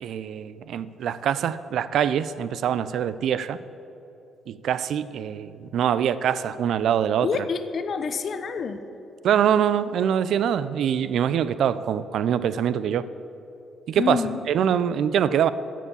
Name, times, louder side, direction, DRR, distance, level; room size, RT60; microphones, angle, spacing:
voice 1, 0.0-3.6 4.5-7.5 9.2-13.1 13.9-14.2 14.5-15.5, right 9 dB, 70° right, 15 dB, 0.4 m, -24 dB
voice 2, 7.2-8.8 14.0-14.4, left 5 dB, 50° left, 10 dB, 0.7 m, -28 dB
11.0 x 7.5 x 6.9 m, 3.0 s
cardioid pair, 90°, 0 cm